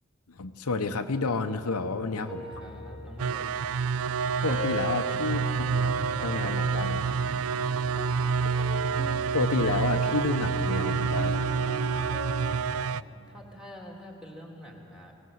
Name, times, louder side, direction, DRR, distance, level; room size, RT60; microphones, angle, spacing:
voice 1, 0.3-2.4 4.4-5.4 5.8-7.2 9.3-11.5, left 3 dB, 80° left, 7 dB, 0.9 m, -30 dB
voice 2, 2.2-3.5 5.2-5.9 8.5-9.0 12.7-13.0 13.3-15.1, left 1 dB, 5° right, 0 dB, 3.0 m, -46 dB
sound 1, 2.3-4.2 4.5-7.0 7.5-7.9, left 2 dB, 20° right, 4.0 m, -41 dB
sound 2, 2.5-12.6, equal, 15° left, 1.7 m, -40 dB
sound 3, 3.2-13.0, right 5 dB, 70° right, 0.4 m, -28 dB
22.5 x 18.0 x 7.9 m, 2.6 s
head